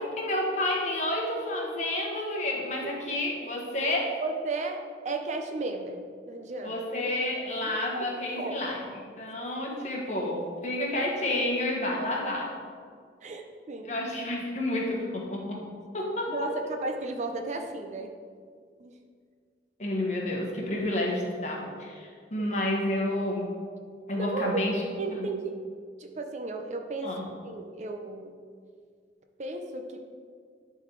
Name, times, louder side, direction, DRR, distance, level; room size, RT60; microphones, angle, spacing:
voice 1, 0.0-4.1 6.6-12.5 13.8-15.6 15.9-16.5 19.8-23.5 24.1-24.8 25.1-25.3 27.0-27.3, left 1 dB, 40° left, -2 dB, 1.4 m, -30 dB
voice 2, 4.2-6.0 6.3-6.8 7.6-8.0 8.4-8.6 13.2-13.9 16.3-18.1 18.8-18.9 22.4-22.5 24.2-24.6 25.0-25.5 26.0-27.1 27.4-28.3 29.4-30.0, right 3 dB, 40° right, 4 dB, 0.6 m, -34 dB
11.0 x 4.0 x 4.6 m, 2.1 s
head